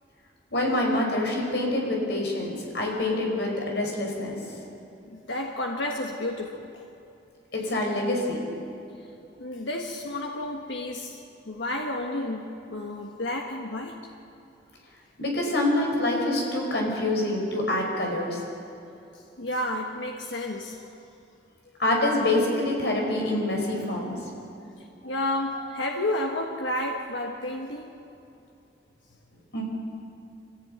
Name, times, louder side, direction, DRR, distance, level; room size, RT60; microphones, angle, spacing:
voice 1, 0.5-4.4 7.5-8.4 15.2-18.4 21.8-24.2 29.5-29.6, left 1 dB, 70° left, 0 dB, 5.3 m, -26 dB
voice 2, 5.1-6.8 9.4-14.1 19.1-20.8 24.8-27.9, left 1 dB, 90° left, 1 dB, 1.4 m, -31 dB
24.0 x 15.0 x 9.3 m, 2.8 s
head